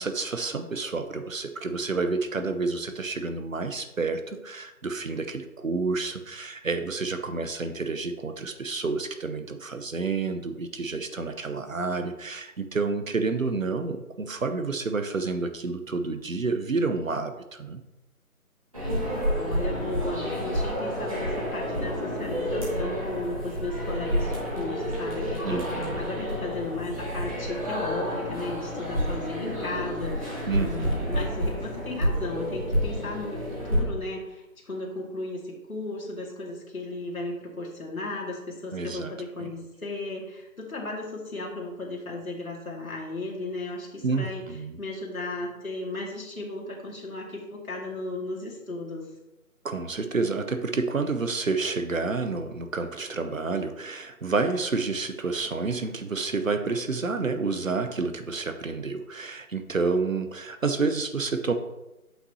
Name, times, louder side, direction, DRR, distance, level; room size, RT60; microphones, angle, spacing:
voice 1, 0.0-17.8 25.4-26.0 30.5-31.0 38.7-39.1 39.4-39.5 44.0-44.8 49.6-61.5, right 4 dB, 65° right, 7 dB, 0.8 m, -29 dB
sound 1, 18.7-33.8, equal, 25° right, 1.8 m, -29 dB
voice 2, 19.4-44.4 44.8-49.1, left 2 dB, 70° left, -2 dB, 2.2 m, -35 dB
8.2 x 5.9 x 2.8 m, 0.97 s
figure-of-eight pair, 180°, 44 cm